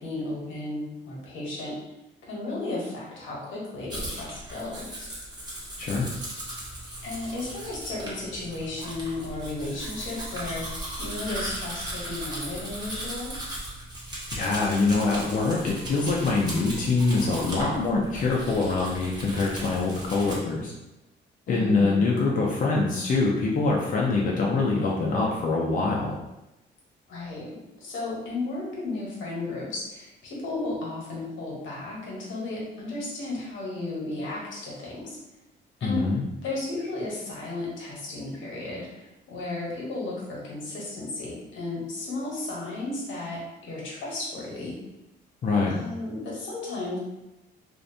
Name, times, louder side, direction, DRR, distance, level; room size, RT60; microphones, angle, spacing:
voice 1, 0.0-1.7 2.2-5.1 7.0-13.4 21.5-22.1 27.1-35.2 35.8-36.0 36.4-39.0 39.3-44.8 45.7-47.0, left 2 dB, 75° left, -4 dB, 0.9 m, -34 dB
Domestic sounds home sounds, 3.9-20.4, right 1 dB, 20° right, 0.9 m, -37 dB
voice 2, 5.8-6.1 14.3-20.7 21.5-26.1 35.8-36.2 45.4-45.7, left 3 dB, 40° left, -3 dB, 0.5 m, -24 dB
2.5 x 2.1 x 2.6 m, 0.95 s
cardioid pair, 90°, 20 cm